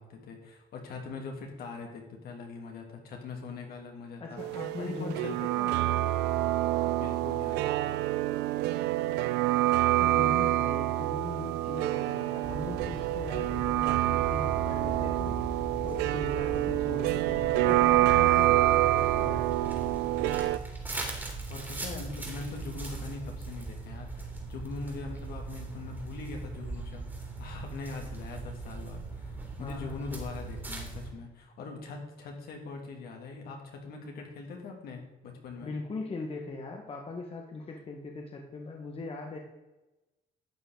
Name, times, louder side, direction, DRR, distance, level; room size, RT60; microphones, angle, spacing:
voice 1, 0.0-4.4 4.8-5.3 6.9-8.0 21.5-35.7, left 4 dB, 65° left, 1 dB, 2.9 m, -42 dB
voice 2, 4.2-5.9 9.9-15.4 15.8-19.9 29.6-30.1 35.6-39.4, left 3 dB, 35° left, 1 dB, 1.8 m, -40 dB
sound 1, 4.4-20.6, right 15 dB, 90° right, 0.6 m, -27 dB
sound 2, 12.4-31.1, right 3 dB, 10° right, 3.1 m, -40 dB
12.5 x 8.0 x 4.0 m, 1.0 s
cardioid pair, 110°, 17 cm